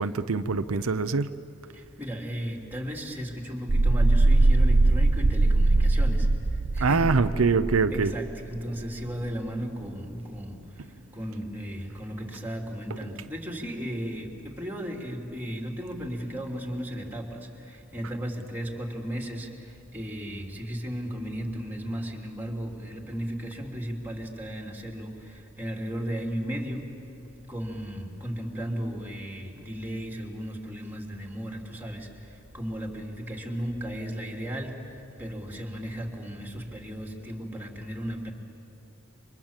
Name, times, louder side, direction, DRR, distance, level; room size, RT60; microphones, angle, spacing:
voice 1, 0.0-1.3 6.8-8.1, right 4 dB, 85° right, 10 dB, 0.7 m, -24 dB
voice 2, 2.0-7.1 7.9-10.8 11.1-19.5 19.9-26.9 27.5-32.1 32.5-34.8 35.2-38.3, equal, 10° right, 1 dB, 3.1 m, -35 dB
sound 1, 3.7-8.3, right 2 dB, 40° right, 0.6 m, -21 dB
29.5 x 25.5 x 7.4 m, 3.0 s
head